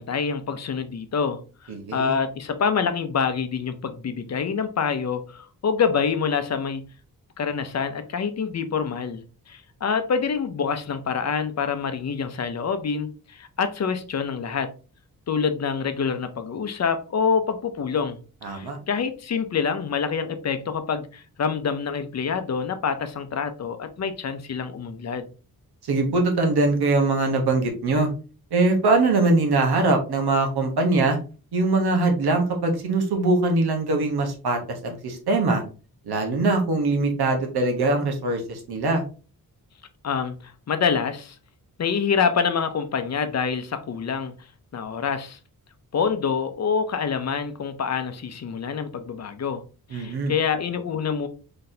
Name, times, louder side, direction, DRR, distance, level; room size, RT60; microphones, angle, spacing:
voice 1, 0.0-6.8 7.4-14.7 15.3-18.2 18.5-25.3 40.0-41.4 41.8-44.3 44.7-45.4 45.9-49.6 49.9-51.3, left 6 dB, 45° left, 0.6 m, -26 dB
voice 2, 1.7-2.1 18.4-18.8 25.8-28.1 28.5-31.2 31.5-35.6 36.1-39.0 49.9-50.3, right 2 dB, 85° right, 1.1 m, -22 dB
4.0 x 3.3 x 2.7 m
wide cardioid pair, 115°, 37 cm